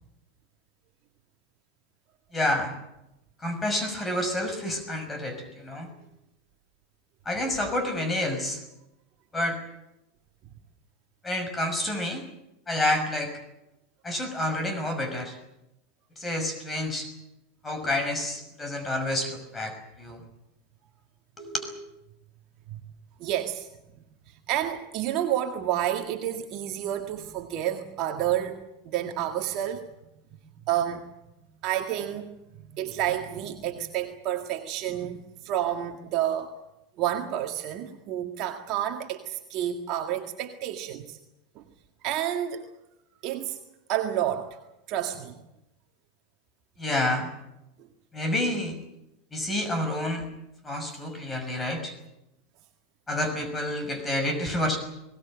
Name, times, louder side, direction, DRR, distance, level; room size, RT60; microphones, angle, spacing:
voice 1, 2.3-2.7 3.4-5.9 7.3-8.6 9.3-9.6 11.2-12.2 12.7-13.3 14.0-15.4 16.2-17.1 17.6-20.2 21.4-21.7 46.8-47.3 48.1-48.8 49.3-50.2 50.6-51.9 53.1-54.8, left 1 dB, 20° left, 7 dB, 5.8 m, -29 dB
voice 2, 23.2-23.7 24.5-28.6 28.8-29.9 30.7-31.1 31.6-32.3 32.7-36.5 37.0-41.2 41.6-41.7 42.0-42.7 43.2-43.6 43.9-44.6 44.9-45.4, right 11 dB, 45° right, 4 dB, 1.9 m, -29 dB
22.0 x 18.5 x 9.0 m, 0.91 s
hypercardioid pair, 90°, 0 cm